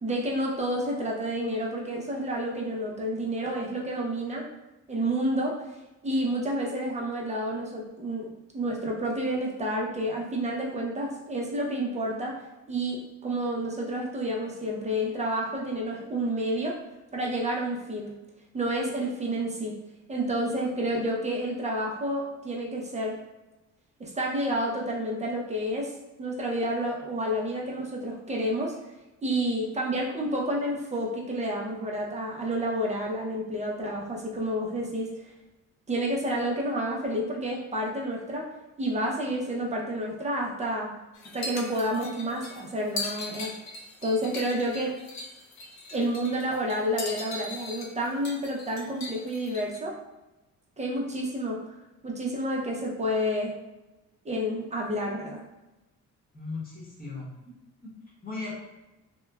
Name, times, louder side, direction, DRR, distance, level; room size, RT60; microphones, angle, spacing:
voice 1, 0.0-4.5 4.9-5.6 6.0-12.4 12.7-16.8 17.1-18.1 18.5-19.8 20.1-23.2 24.0-25.9 26.2-28.7 29.2-35.1 35.9-38.5 38.8-40.9 41.3-43.5 44.0-45.0 45.9-49.9 50.8-51.6 52.0-53.5 54.2-55.4, right 1 dB, 25° right, -2 dB, 0.6 m, -29 dB
sound 1, 41.1-49.8, left 2 dB, 65° left, 0.6 m, -39 dB
voice 2, 56.3-57.3 57.8-57.9 58.2-58.5, left 3 dB, 30° left, -5 dB, 1.0 m, -37 dB
2.9 x 2.1 x 2.2 m, 1.0 s
cardioid pair, 90°, 30 cm